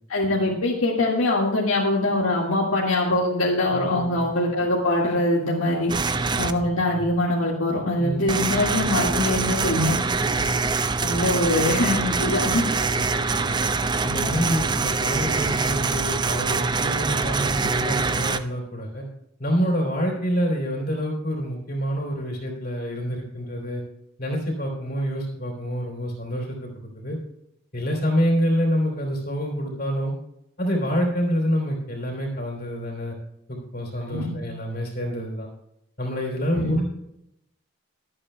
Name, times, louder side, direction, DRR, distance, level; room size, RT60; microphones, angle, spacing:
voice 1, 0.1-5.9 6.4-10.0 11.0-12.6 34.0-34.3 36.5-36.8, left 1 dB, 85° left, -4 dB, 1.9 m, -23 dB
voice 2, 3.7-4.2 6.1-6.7 8.0-8.4 10.2-10.6 12.8-13.7 14.0-19.0 19.4-23.8 24.2-26.7 26.9-27.2 27.7-30.1 30.6-33.1 33.5-35.5 36.0-36.8, equal, 45° left, 0 dB, 3.3 m, -27 dB
sound 1, 5.9-6.5 8.3-18.4, right 4 dB, 20° right, 0.4 m, -24 dB
22.5 x 8.7 x 2.3 m, 0.82 s
head